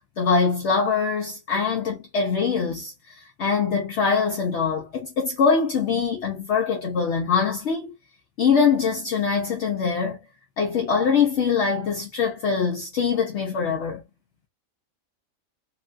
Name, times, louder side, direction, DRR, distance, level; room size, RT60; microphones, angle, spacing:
voice 1, 0.2-7.9 8.4-10.2 10.6-14.0, left 5 dB, 60° left, 0.9 m, -23 dB
3.0 x 2.2 x 2.4 m
omnidirectional pair, 1.4 m